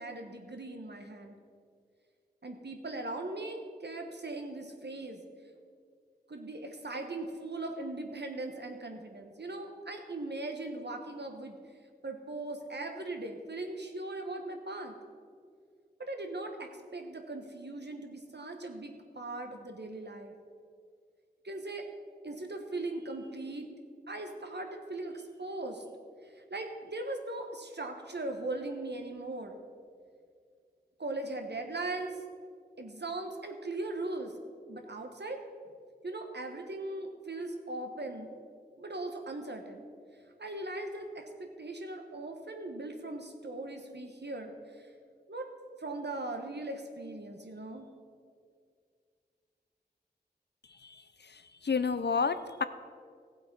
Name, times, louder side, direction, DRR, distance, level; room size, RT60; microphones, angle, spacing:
voice 1, 0.0-1.4 2.4-5.2 6.3-11.6 12.0-15.0 16.0-20.3 21.4-21.8 22.2-23.7 24.1-25.8 26.5-29.6 31.0-32.1 32.8-34.3 34.7-35.4 36.0-38.3 38.8-39.8 40.4-41.2 41.6-44.6 45.3-45.5 45.8-47.9, right 2 dB, 85° right, 4 dB, 1.3 m, -39 dB
voice 2, 50.8-52.6, left 5 dB, 85° left, 12 dB, 0.6 m, -31 dB
16.0 x 7.7 x 5.4 m, 2.1 s
wide cardioid pair, 50°, 17 cm